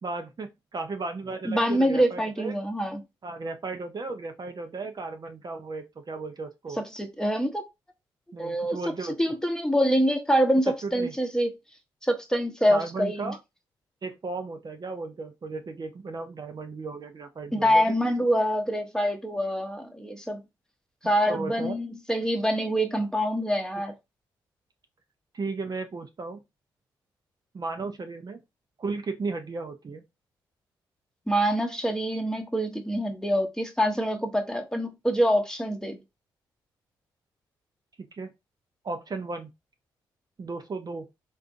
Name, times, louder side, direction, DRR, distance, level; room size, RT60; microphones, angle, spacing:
voice 1, 0.0-2.5 3.2-6.8 8.3-9.2 10.8-11.1 12.7-13.4 14.0-17.8 21.3-21.8 25.3-26.4 27.5-28.4 28.8-30.0 38.0-38.3 38.8-39.5 40.4-41.1, right 3 dB, 45° right, 0.6 m, -35 dB
voice 2, 1.4-3.0 6.8-7.7 8.4-8.8 9.2-11.5 12.0-13.3 17.5-20.4 21.0-23.9 31.3-36.0, equal, 5° left, 0.9 m, -25 dB
3.8 x 2.5 x 2.5 m
supercardioid pair, 50°, 10 cm